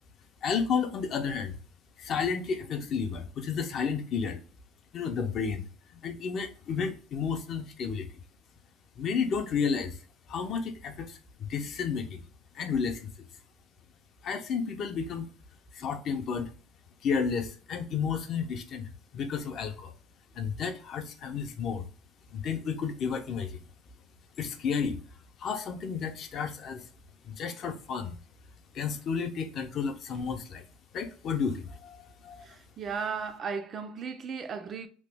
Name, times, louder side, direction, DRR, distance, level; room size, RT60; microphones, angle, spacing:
voice 1, 0.4-1.6 2.0-4.4 4.9-5.7 5.9-8.1 9.0-10.0 10.3-12.2 12.5-13.1 14.2-15.3 15.7-16.5 17.0-19.9 20.4-21.9 22.3-23.6 24.4-25.0 25.4-26.9 27.2-28.2 28.7-30.6 30.9-32.5, left 6 dB, 45° left, 0.5 m, -32 dB
voice 2, 32.4-34.9, right 5 dB, 35° right, 0.3 m, -35 dB
2.9 x 2.2 x 3.3 m
cardioid pair, 145°, 0 cm